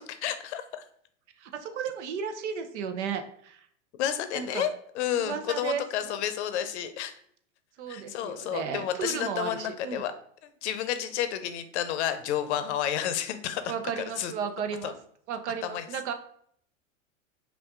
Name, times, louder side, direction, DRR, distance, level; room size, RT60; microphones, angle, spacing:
voice 1, 0.1-0.8 4.0-4.7 4.9-7.1 7.9-10.1 10.4-13.6 14.0-14.3 14.8-14.9 15.6-15.9, left 10 dB, 60° left, 10 dB, 0.7 m, -31 dB
voice 2, 1.4-3.7 4.3-4.7 5.2-6.2 7.8-10.0 13.7-14.9 15.3-16.1, right 7 dB, 65° right, 8 dB, 0.7 m, -34 dB
5.6 x 2.5 x 3.6 m, 0.64 s
supercardioid pair, 135°, 38 cm